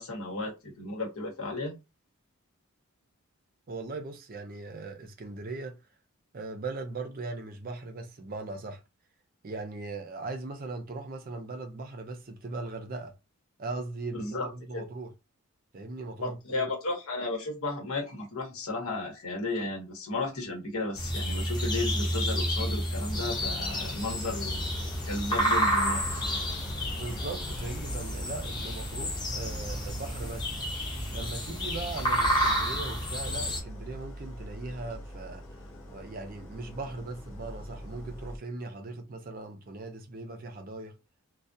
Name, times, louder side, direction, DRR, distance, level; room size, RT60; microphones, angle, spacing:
voice 1, 0.0-1.8 14.2-14.8 16.2-24.6 25.1-26.5, left 2 dB, 85° left, 1.0 m, -34 dB
voice 2, 3.7-5.8 6.3-8.8 9.4-13.1 13.6-15.1 15.7-16.7 26.9-30.5 31.1-35.4 35.9-41.0, right 3 dB, 40° right, 0.5 m, -39 dB
sound 1, 20.9-33.6, equal, 20° left, 0.7 m, -30 dB
Idling, 23.1-38.4, equal, 60° left, 0.6 m, -42 dB
2.3 x 2.2 x 2.6 m
head